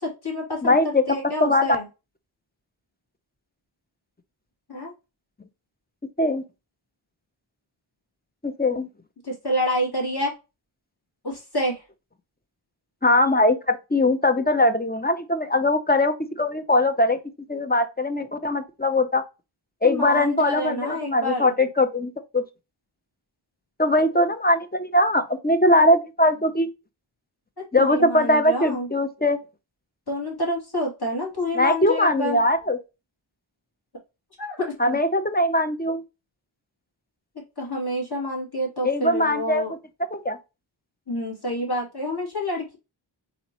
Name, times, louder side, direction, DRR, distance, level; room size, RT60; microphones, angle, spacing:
voice 1, 0.0-1.8 4.7-4.9 9.2-10.4 11.2-11.8 19.8-21.5 27.8-28.9 30.1-32.4 34.4-35.0 37.6-39.7 41.1-42.8, left 1 dB, 50° left, 2.6 m, -28 dB
voice 2, 0.6-1.0 1.4-1.7 6.2-6.4 8.4-8.9 13.0-17.2 17.5-19.2 19.8-22.4 23.8-26.7 27.7-29.4 31.6-32.8 34.8-36.0 38.8-39.7 40.1-40.4, left 1 dB, 20° left, 0.6 m, -21 dB
4.1 x 4.0 x 3.0 m
wide cardioid pair, 55°, 48 cm